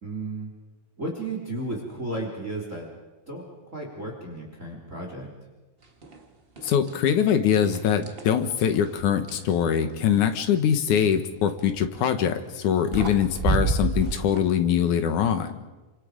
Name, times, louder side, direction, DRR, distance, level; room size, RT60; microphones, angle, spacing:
voice 1, 0.0-0.5 1.0-2.9 3.3-3.4 3.7-5.3, right 2 dB, 20° right, 0 dB, 3.6 m, -33 dB
sound 1, 6.0-6.2 6.6-7.2 7.6-9.5 11.7-12.0 12.6-12.7 12.9-14.4, right 3 dB, 70° right, 0.5 m, -29 dB
voice 2, 6.6-15.5, left 8 dB, 65° left, 8 dB, 2.4 m, -23 dB
27.5 x 26.0 x 5.1 m, 1.2 s
omnidirectional pair, 4.2 m